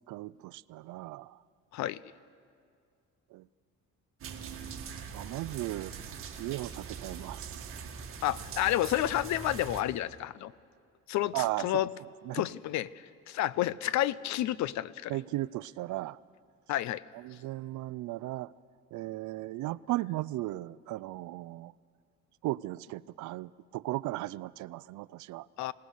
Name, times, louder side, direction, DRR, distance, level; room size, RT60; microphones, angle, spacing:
voice 1, 0.1-1.4 3.3-3.5 5.1-5.9 6.4-7.6 11.3-11.8 12.3-12.5 15.1-16.2 17.1-18.5 18.9-21.7 22.4-25.5, right 17 dB, 70° right, 0.5 m, -36 dB
sound 1, 4.2-9.8, right 6 dB, 45° right, 2.0 m, -42 dB
voice 2, 8.2-10.5 11.1-11.9 12.3-15.1 16.7-17.0 25.6-25.7, left 13 dB, 65° left, 0.6 m, -30 dB
26.5 x 18.0 x 6.5 m
cardioid pair, 160°, 31 cm